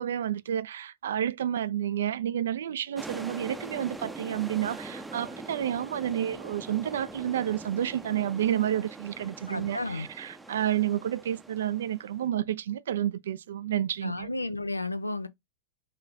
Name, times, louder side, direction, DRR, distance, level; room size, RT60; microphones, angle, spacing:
voice 1, 0.0-14.3, right 10 dB, 60° right, 0.3 m, -30 dB
sound 1, 3.0-12.2, right 2 dB, 5° right, 0.6 m, -43 dB
voice 2, 9.5-10.1 14.0-15.3, left 2 dB, 85° left, 0.5 m, -32 dB
5.6 x 3.1 x 2.5 m
figure-of-eight pair, 90°, 0 cm